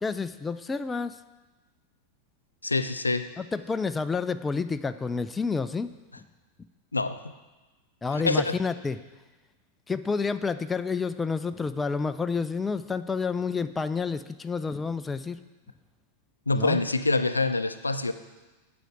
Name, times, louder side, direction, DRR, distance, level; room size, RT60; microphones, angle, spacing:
voice 1, 0.0-1.2 3.4-5.9 8.0-9.0 9.9-15.4 16.6-16.8, left 4 dB, 15° left, 11 dB, 0.4 m, -29 dB
voice 2, 2.6-3.3 6.9-7.2 8.2-8.6 16.5-18.1, left 3 dB, 80° left, 11 dB, 0.5 m, -25 dB
8.9 x 5.9 x 8.0 m, 1.2 s
figure-of-eight pair, 90°, 0 cm